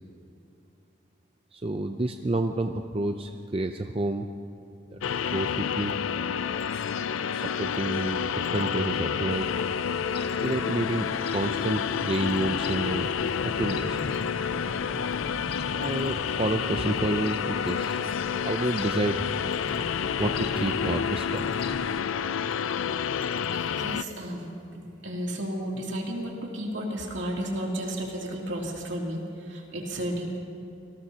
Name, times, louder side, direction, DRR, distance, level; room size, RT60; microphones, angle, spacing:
voice 1, 1.5-4.3 4.9-5.0 5.3-5.9 7.3-9.5 10.4-13.1 13.4-14.0 15.7-18.0 18.5-19.2 20.2-21.5, right 2 dB, 30° right, 5 dB, 0.5 m, -29 dB
sound 1, 5.0-24.0, left 7 dB, 80° left, 0.4 m, -29 dB
sound 2, 9.3-22.0, left 2 dB, 50° left, 0.9 m, -41 dB
voice 2, 23.5-30.4, equal, 70° right, -2 dB, 2.8 m, -33 dB
26.0 x 19.0 x 2.9 m, 2.7 s
head